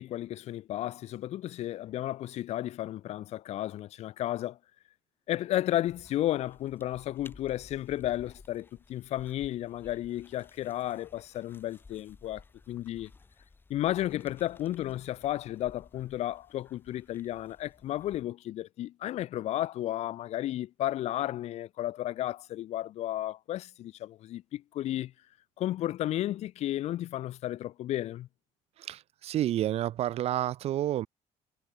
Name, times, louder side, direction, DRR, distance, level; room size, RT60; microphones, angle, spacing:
voice 1, 0.0-4.6 5.3-13.1 13.7-25.1 25.6-28.3, left 13 dB, 50° left, 1.0 m, -33 dB
sound 1, 5.9-18.2, left 4 dB, 15° left, 3.2 m, -56 dB
voice 2, 28.8-31.1, right 12 dB, 45° right, 0.9 m, -30 dB
cardioid pair, 175°, 14 cm